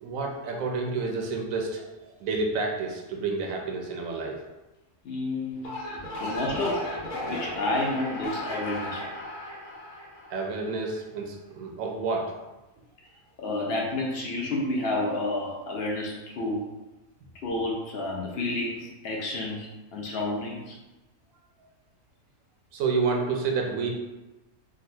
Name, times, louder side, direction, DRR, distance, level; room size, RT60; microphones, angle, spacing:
voice 1, 0.0-1.9 2.2-4.4 10.3-12.3 22.7-23.9, right 4 dB, 90° right, 1 dB, 1.0 m, -29 dB
voice 2, 5.0-5.6 6.2-9.1 13.4-16.7 17.4-20.8, left 2 dB, 60° left, -1 dB, 0.7 m, -30 dB
sound 1, 5.5-10.8, left 1 dB, 90° left, 1.2 m, -35 dB
3.8 x 2.2 x 2.6 m, 1.1 s
omnidirectional pair, 1.4 m